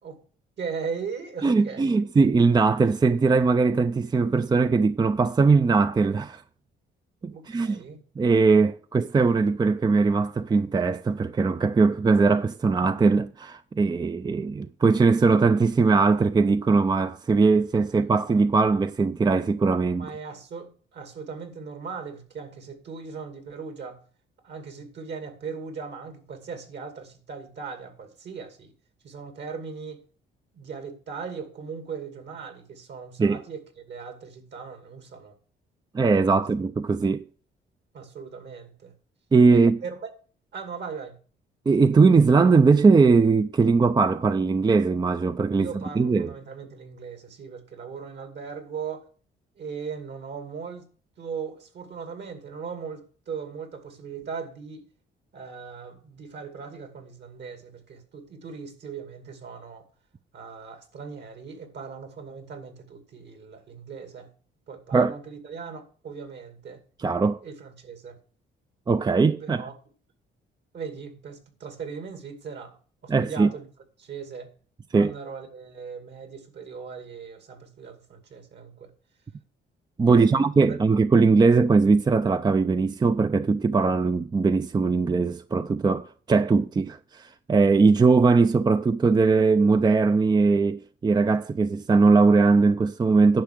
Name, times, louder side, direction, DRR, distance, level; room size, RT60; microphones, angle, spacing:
voice 1, 0.6-2.1 7.3-8.0 20.0-24.0 24.4-28.7 29.0-30.0 30.5-35.4 37.9-38.9 39.5-40.1 40.5-41.2 45.5-49.1 49.6-50.9 51.2-54.9 55.3-59.9 60.3-64.3 64.7-66.8 67.4-68.2 69.4-69.7 70.7-72.8 73.0-73.7 74.0-74.5 74.9-78.9 80.1-80.4, right 5 dB, 60° right, 2.5 m, -38 dB
voice 2, 1.4-6.4 7.2-7.8 8.2-20.1 33.2-33.4 35.9-37.2 39.3-39.8 41.7-45.7 46.0-46.3 64.9-65.1 67.0-67.4 68.9-69.6 73.1-73.5 74.9-75.1 80.0-93.4, right 4 dB, 20° right, 0.5 m, -20 dB
10.5 x 5.7 x 6.5 m
cardioid pair, 90°, 20 cm